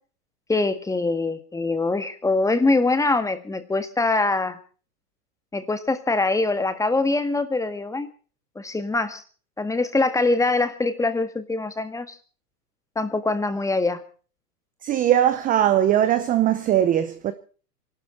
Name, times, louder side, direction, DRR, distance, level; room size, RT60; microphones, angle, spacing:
voice 1, 0.5-4.6 5.5-8.1 8.5-9.2 9.6-12.1 12.9-14.0, left 3 dB, 5° left, 1.6 m, -23 dB
voice 2, 14.8-17.3, right 11 dB, 15° right, 0.7 m, -20 dB
26.5 x 12.5 x 4.3 m
hypercardioid pair, 125°, 48 cm